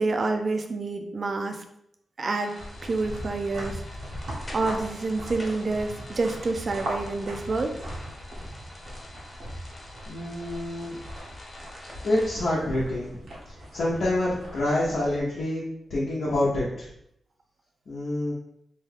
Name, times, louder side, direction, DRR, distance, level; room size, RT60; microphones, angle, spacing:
voice 1, 0.0-1.6 2.2-2.5 2.8-3.8 4.5-7.7, right 3 dB, 50° right, 5 dB, 0.4 m, -28 dB
sound 1, 2.3-12.4, left 1 dB, 35° left, 1.1 m, -46 dB
sound 2, 2.6-15.2, equal, 85° right, 1.0 m, -39 dB
voice 2, 10.1-11.0 12.0-15.6 15.9-16.9 17.9-18.3, left 1 dB, 75° left, -7 dB, 0.8 m, -27 dB
2.8 x 2.2 x 3.3 m, 0.75 s
cardioid pair, 65°, 0 cm